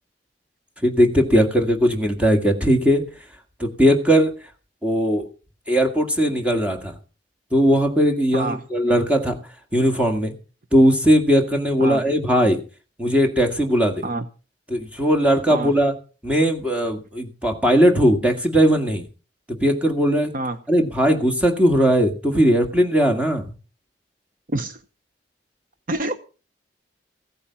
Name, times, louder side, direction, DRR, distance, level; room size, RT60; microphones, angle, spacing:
voice 1, 0.8-3.0 3.6-4.3 4.8-5.3 5.7-7.0 7.5-9.4 9.7-10.3 10.7-12.6 13.0-14.0 14.7-15.9 16.2-19.1 19.6-20.3 20.7-23.5, equal, 10° right, 4 dB, 1.9 m, -18 dB
voice 2, 24.5-24.8 25.9-26.2, right 2 dB, 50° right, 11 dB, 0.8 m, -26 dB
16.0 x 8.7 x 5.7 m, 0.36 s
head